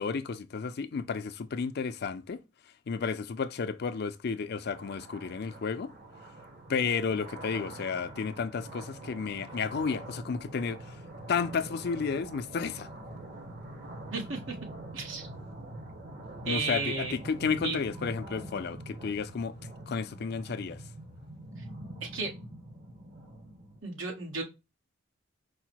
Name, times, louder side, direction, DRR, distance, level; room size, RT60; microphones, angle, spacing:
voice 1, 0.0-2.4 2.9-5.9 6.7-10.8 11.3-12.9 16.5-19.6 19.9-20.8, left 5 dB, 55° left, 0.4 m, -32 dB
sound 1, 4.6-23.8, right 1 dB, 50° right, 0.9 m, -45 dB
voice 2, 14.1-14.5 14.9-15.3 16.4-17.1 17.6-17.8 21.6-21.7 22.0-22.3 23.8-24.4, right 3 dB, 90° right, 1.4 m, -33 dB
4.8 x 2.1 x 4.4 m
head